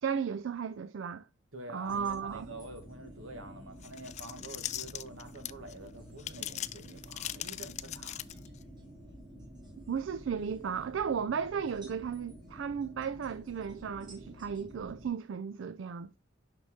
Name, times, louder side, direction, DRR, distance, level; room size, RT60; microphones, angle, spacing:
voice 1, 0.0-1.3 1.7-2.5 9.9-16.2, right 6 dB, 70° right, 0.4 m, -35 dB
voice 2, 1.5-8.3, right 2 dB, 85° right, 1.5 m, -47 dB
sound 1, 1.9-15.1, equal, 20° right, 2.5 m, -50 dB
sound 2, 3.8-5.7 6.2-8.6, left 12 dB, 35° left, 0.3 m, -39 dB
6.3 x 5.8 x 3.5 m
head